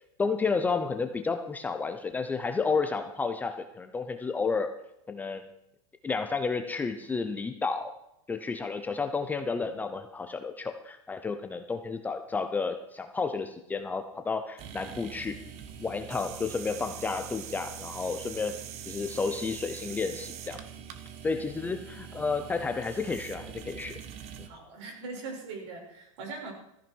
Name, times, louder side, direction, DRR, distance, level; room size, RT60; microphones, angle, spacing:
voice 1, 0.2-4.7 5.1-5.5 6.0-7.9 8.3-15.3 15.8-18.5 18.9-20.6 21.2-24.0, left 4 dB, 10° left, 7 dB, 0.7 m, -31 dB
sound 1, 14.6-24.5, right 9 dB, 35° right, 1.4 m, -43 dB
voice 2, 24.4-26.5, right 4 dB, 60° right, 1 dB, 6.2 m, -41 dB
15.5 x 14.0 x 4.6 m, 0.81 s
supercardioid pair, 155°, 17 cm